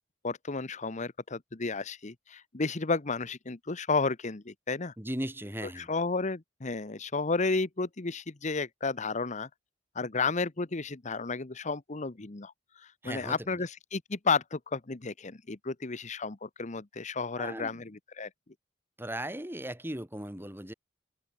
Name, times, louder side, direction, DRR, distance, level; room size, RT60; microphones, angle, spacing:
voice 1, 0.2-4.9 5.8-9.5 9.9-17.9 18.2-18.3, left 4 dB, 40° left, 1.0 m, -32 dB
voice 2, 5.0-5.9 13.0-13.6 17.4-17.8 19.0-20.7, right 1 dB, 10° right, 3.8 m, -37 dB
open air
head